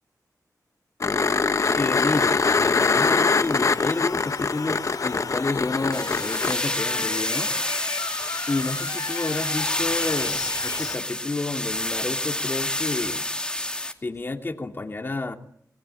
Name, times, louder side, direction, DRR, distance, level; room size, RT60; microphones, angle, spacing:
sound 1, 1.0-6.5 9.2-9.3, left 4 dB, 50° left, 1.0 m, -23 dB
sound 2, 1.6-11.0, left 5 dB, 70° left, 4.0 m, -35 dB
voice 1, 1.7-7.5 8.5-13.2 14.0-15.3, left 2 dB, 35° left, 4 dB, 2.4 m, -30 dB
sound 3, 5.9-13.9, left 1 dB, 15° left, 2.5 m, -28 dB
28.0 x 20.0 x 9.0 m, 0.68 s
wide cardioid pair, 135°, 7 cm